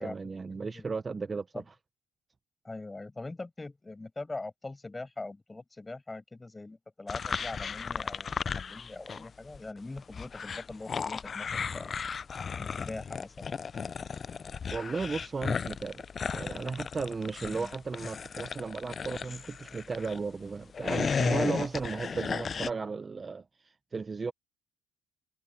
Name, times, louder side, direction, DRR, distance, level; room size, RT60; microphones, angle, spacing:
voice 1, 0.0-1.5 14.7-16.1 16.3-24.3, right 4 dB, 25° right, 0.7 m, -35 dB
voice 2, 0.6-0.9 1.5-1.6 2.6-11.9 12.6-13.7 17.4-17.7, left 2 dB, 15° left, 7.5 m, -42 dB
sound 1, 7.1-9.3 9.5-20.2 20.6-22.7, left 6 dB, 35° left, 0.4 m, -35 dB
cardioid pair, 110°, 0 cm